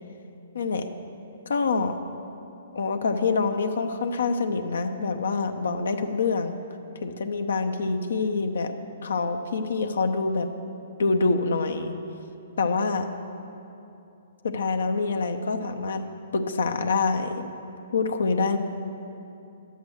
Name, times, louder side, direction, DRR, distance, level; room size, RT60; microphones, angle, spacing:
voice 1, 0.5-0.9 1.5-2.0 2.7-6.6 7.0-8.7 9.0-10.5 11.0-11.9 12.6-13.1 14.4-17.5 17.9-18.6, left 4 dB, 80° left, 6 dB, 0.7 m, -26 dB
11.0 x 8.1 x 6.3 m, 2.8 s
hypercardioid pair, 140°, 0 cm